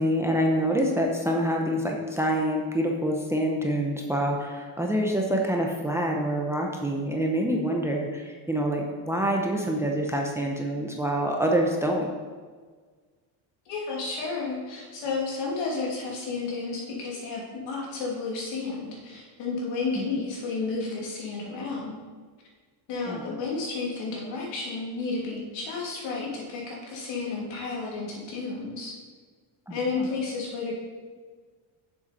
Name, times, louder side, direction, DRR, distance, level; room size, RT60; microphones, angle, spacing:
voice 1, 0.0-12.1 19.9-20.0 23.1-23.2 29.7-30.1, equal, 5° right, 0 dB, 0.6 m, -26 dB
voice 2, 13.7-22.0 22.9-28.9 29.7-30.7, left 4 dB, 80° left, -3 dB, 2.9 m, -32 dB
7.1 x 7.0 x 5.1 m, 1.5 s
cardioid pair, 170°, 44 cm